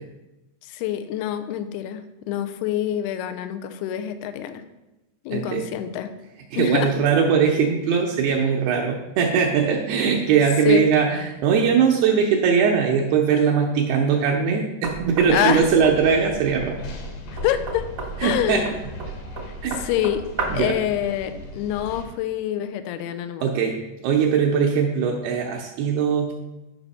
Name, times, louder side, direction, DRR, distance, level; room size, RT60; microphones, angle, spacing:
voice 1, 0.6-4.6 5.3-6.1 6.6-6.9 10.7-10.9 15.3-15.7 17.4-17.8 18.2-18.7 19.7-20.3 20.5-23.5, left 11 dB, 85° left, 10 dB, 2.5 m, -26 dB
voice 2, 5.3-5.7 6.5-16.8 18.2-18.6 19.6-19.8 20.5-20.8 23.4-23.8 24.0-26.3, right 6 dB, 75° right, 0 dB, 2.5 m, -20 dB
Knock, 14.8-20.7, right 3 dB, 55° right, 1.3 m, -34 dB
sound 1, 15.8-22.1, left 1 dB, 65° left, 2.9 m, -38 dB
10.0 x 5.6 x 4.1 m, 1.0 s
omnidirectional pair, 5.0 m